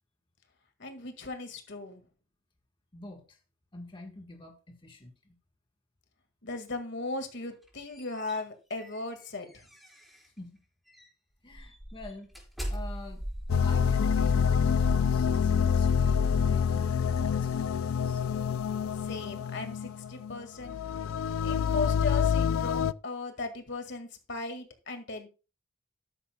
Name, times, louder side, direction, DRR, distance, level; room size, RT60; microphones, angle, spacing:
voice 1, 0.8-2.0 6.4-9.6 19.0-20.8 21.4-25.3, left 3 dB, 60° left, 7 dB, 1.9 m, -37 dB
voice 2, 2.9-3.4 3.7-5.3 10.4-10.6 11.4-12.3 12.7-13.2 13.6-18.2, left 2 dB, 25° left, 2 dB, 1.4 m, -47 dB
sound 1, 7.4-10.4 10.9-11.1 11.5-15.8, equal, ahead, 4.9 m, -41 dB
sound 2, 13.5-22.9, left 7 dB, 90° left, 0.4 m, -27 dB
13.0 x 10.0 x 2.3 m, 0.32 s
head